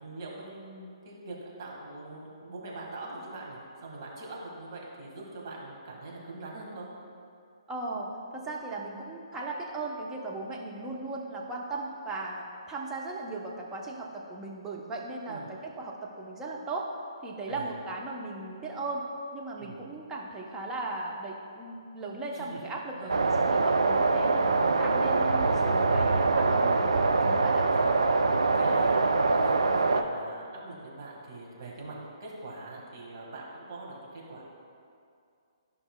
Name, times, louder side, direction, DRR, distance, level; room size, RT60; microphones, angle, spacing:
voice 1, 0.0-6.9 15.3-15.5 17.5-17.8 19.6-19.8 22.3-22.6 22.9-23.2 27.5-28.0 28.5-29.0 29.3-34.4, right 2 dB, 45° right, -3 dB, 1.7 m, -42 dB
voice 2, 7.7-16.9 17.2-19.1 19.3-27.6, right 2 dB, 10° right, -3 dB, 0.7 m, -37 dB
sound 1, 23.1-30.0, right 3 dB, 70° right, 0.4 m, -24 dB
12.5 x 5.5 x 2.2 m, 2.4 s
figure-of-eight pair, 130°, 3 cm